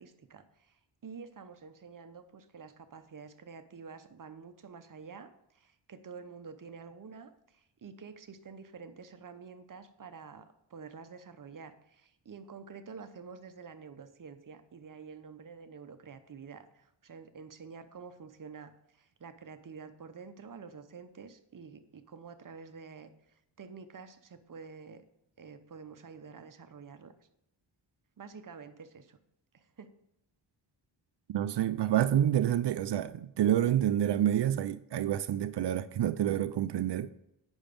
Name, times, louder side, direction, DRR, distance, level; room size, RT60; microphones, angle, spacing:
voice 1, 0.0-23.1 23.6-25.0 25.4-27.1 28.2-29.2 29.5-29.9, right 5 dB, 45° right, 0.9 m, -49 dB
voice 2, 31.3-37.1, right 11 dB, 65° right, 0.5 m, -28 dB
8.9 x 6.2 x 5.2 m
wide cardioid pair, 105°, 46 cm